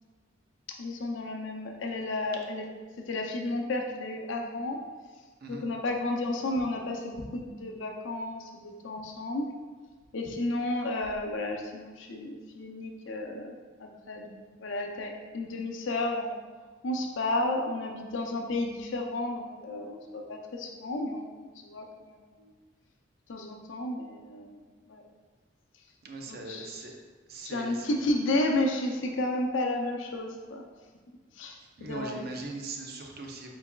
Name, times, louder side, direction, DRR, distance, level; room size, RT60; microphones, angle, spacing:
voice 1, 0.7-2.6 3.1-4.8 5.5-9.5 10.1-16.4 16.8-22.5 23.3-24.6 24.9-25.0 26.3-26.7 27.4-30.6 31.4-32.2, left 2 dB, 75° left, 1 dB, 0.5 m, -32 dB
voice 2, 26.0-27.0 27.3-27.9 31.8-33.5, right 3 dB, 55° right, 2 dB, 0.6 m, -40 dB
4.6 x 4.0 x 2.3 m, 1.4 s
head